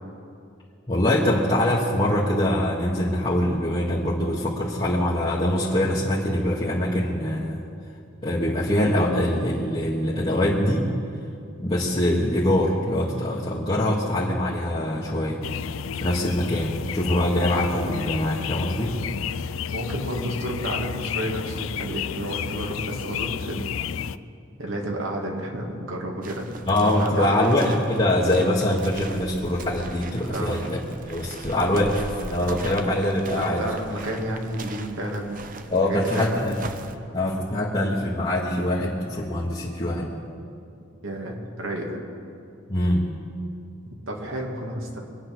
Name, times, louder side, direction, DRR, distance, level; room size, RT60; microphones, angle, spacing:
voice 1, 0.9-7.6 8.2-10.9 11.6-15.4 15.9-18.9 26.7-30.8 31.1-33.7 34.1-34.2 35.7-36.6 37.1-40.1 42.7-43.0, left 1 dB, 25° left, -6 dB, 1.5 m, -23 dB
sound 1, 15.4-24.2, left 8 dB, 80° left, 0.4 m, -31 dB
voice 2, 19.7-23.9 24.6-26.5 26.8-27.5 30.3-30.6 33.4-35.6 35.9-36.5 41.0-42.0 43.9-45.0, right 1 dB, 80° right, 0 dB, 2.4 m, -31 dB
sound 2, 26.2-37.0, right 3 dB, 45° right, 0.8 m, -40 dB
23.5 x 8.8 x 6.2 m, 2.5 s
head